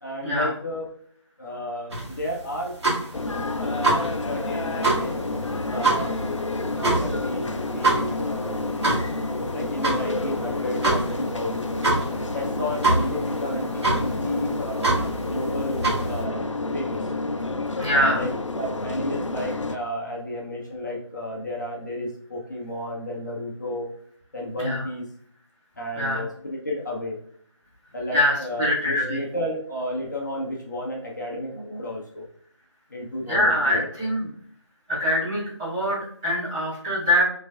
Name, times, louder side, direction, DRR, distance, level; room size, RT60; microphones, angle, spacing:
voice 1, 0.0-0.9 1.4-2.8 3.5-5.2 5.7-6.2 6.7-8.6 9.5-11.7 12.3-15.0 15.3-16.4 16.7-17.1 17.9-24.0 24.3-25.1 25.8-27.2 27.9-32.3 32.9-34.1, left 1 dB, 35° left, -2 dB, 0.8 m, -32 dB
sound 1, 1.9-16.2, right 2 dB, 60° right, 1.6 m, -26 dB
sound 2, 3.1-19.8, left 2 dB, 75° left, 0.5 m, -29 dB
voice 2, 17.8-18.2 24.6-24.8 26.0-26.2 28.1-29.2 33.3-34.2 35.0-37.2, equal, 10° right, -11 dB, 1.6 m, -23 dB
6.1 x 3.3 x 2.3 m, 0.65 s
figure-of-eight pair, 160°, 16 cm